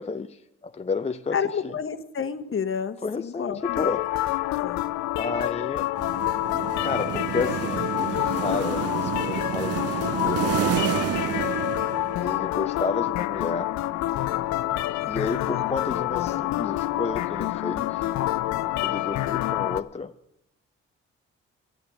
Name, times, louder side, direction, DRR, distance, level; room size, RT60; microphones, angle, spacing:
voice 1, 0.0-1.7 3.0-4.1 5.1-5.9 6.8-10.7 12.2-13.7 15.1-18.1 18.8-20.1, left 4 dB, 20° left, 9 dB, 0.5 m, -31 dB
voice 2, 1.3-3.9 4.6-4.8 15.0-15.6, left 7 dB, 45° left, 11 dB, 1.1 m, -31 dB
sound 1, 3.6-19.8, left 15 dB, 75° left, 0.5 m, -27 dB
sound 2, 6.0-12.5, right 12 dB, 55° right, 0.4 m, -30 dB
10.0 x 8.0 x 8.0 m, 0.83 s
supercardioid pair, 50°, 29 cm